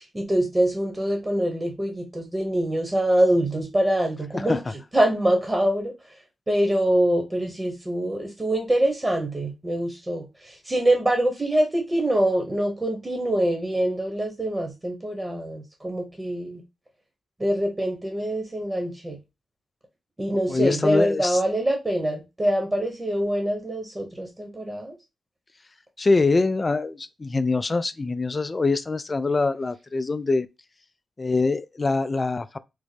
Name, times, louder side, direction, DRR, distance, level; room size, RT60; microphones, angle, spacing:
voice 1, 0.0-4.6 4.9-5.9 6.5-16.6 17.4-19.2 20.2-24.9, right 1 dB, 25° right, 1.1 m, -24 dB
voice 2, 20.5-21.4 26.0-30.5 31.2-32.6, left 3 dB, 35° left, 0.3 m, -24 dB
3.6 x 2.0 x 3.3 m
supercardioid pair, 40°, 0 cm